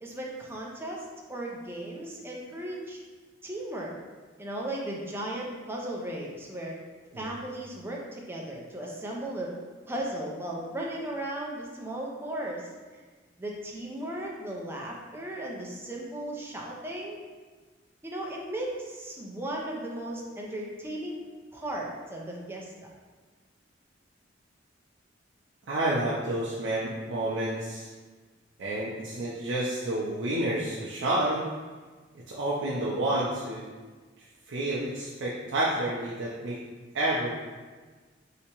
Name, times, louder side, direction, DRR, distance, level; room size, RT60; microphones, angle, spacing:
voice 1, 0.0-3.0 3.4-3.9 4.4-6.8 7.2-9.5 9.9-13.0 13.4-17.2 18.0-21.2 21.5-22.7, right 1 dB, 10° right, -2 dB, 0.5 m, -36 dB
voice 2, 25.7-27.9 28.6-31.4 32.3-33.6 34.5-36.6 36.9-37.3, right 1 dB, 75° right, -6 dB, 0.5 m, -29 dB
3.4 x 2.9 x 2.9 m, 1.4 s
head